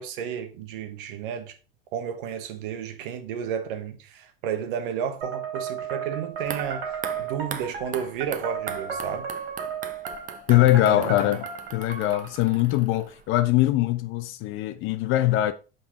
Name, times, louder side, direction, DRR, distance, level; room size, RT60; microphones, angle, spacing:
voice 1, 0.0-1.5 1.9-9.3 10.5-11.3, right 8 dB, 65° right, 1.2 m, -32 dB
sound 1, 5.2-12.4, right 7 dB, 80° right, 2.9 m, -34 dB
sound 2, 6.3-13.5 13.7-13.8, right 8 dB, 30° right, 0.7 m, -41 dB
voice 2, 10.5-15.5, left 15 dB, 45° left, 0.7 m, -22 dB
5.7 x 5.3 x 4.2 m
hypercardioid pair, 80°, 29 cm